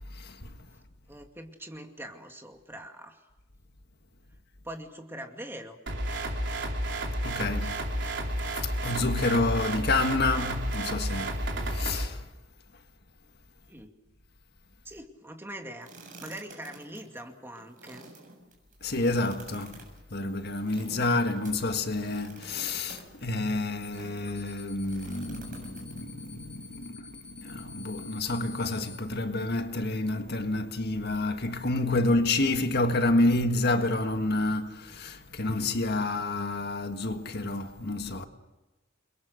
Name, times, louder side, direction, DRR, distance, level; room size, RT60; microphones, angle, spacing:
voice 1, 0.1-0.5 7.2-7.9 8.5-11.4 11.7-12.2 18.8-19.8 20.1-38.3, left 2 dB, 55° left, 1.7 m, -29 dB
voice 2, 1.1-3.2 4.6-5.8 13.7-13.9 14.8-15.9 16.2-18.1, right 1 dB, 10° right, 2.4 m, -42 dB
sound 1, 5.9-12.1, right 1 dB, 60° right, 4.1 m, -31 dB
sound 2, 15.8-24.4 24.8-26.3, right 2 dB, 45° right, 7.4 m, -50 dB
sound 3, 23.8-24.0 24.2-29.0, left 5 dB, 5° left, 4.7 m, -48 dB
29.5 x 22.5 x 6.6 m
head